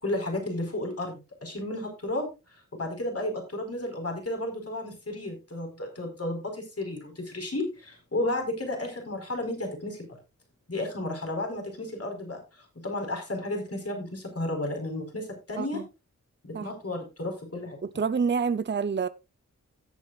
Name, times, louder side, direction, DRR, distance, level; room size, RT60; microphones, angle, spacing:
voice 1, 0.0-10.1 10.7-15.8 16.4-17.8, left 1 dB, 45° left, 4.8 m, -33 dB
voice 2, 17.8-19.1, right 5 dB, 35° right, 0.7 m, -27 dB
16.5 x 7.7 x 2.4 m
cardioid pair, 50°, 33 cm